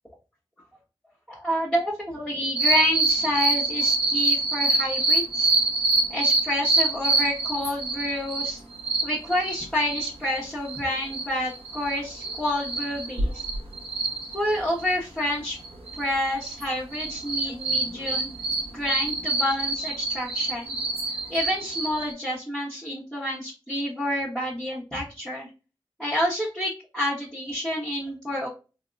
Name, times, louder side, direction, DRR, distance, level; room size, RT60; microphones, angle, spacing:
voice 1, 1.3-5.5 6.1-8.6 9.0-13.4 14.3-15.6 16.0-18.3 18.7-20.7 21.3-25.5 26.0-28.5, left 1 dB, 5° left, -8 dB, 1.3 m, -28 dB
sound 1, 2.5-10.4 10.6-10.8 11.1-15.3 15.6-16.6 16.9-22.1, right 3 dB, 90° right, 1.1 m, -26 dB
3.7 x 2.8 x 2.5 m, 0.32 s
wide cardioid pair, 55°, 10 cm